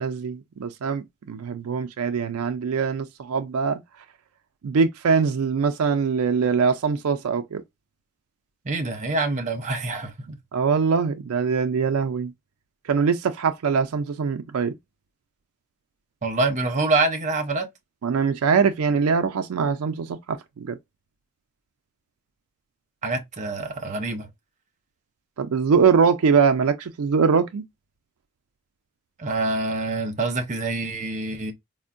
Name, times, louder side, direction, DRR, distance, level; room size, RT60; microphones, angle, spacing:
voice 1, 0.0-3.8 4.6-7.6 10.5-12.3 12.8-14.8 18.0-20.8 25.4-27.6, right 5 dB, 80° right, 0.4 m, -22 dB
voice 2, 8.6-10.4 16.2-17.7 23.0-24.3 29.2-31.5, right 2 dB, 35° right, 0.7 m, -26 dB
4.3 x 2.1 x 2.5 m
head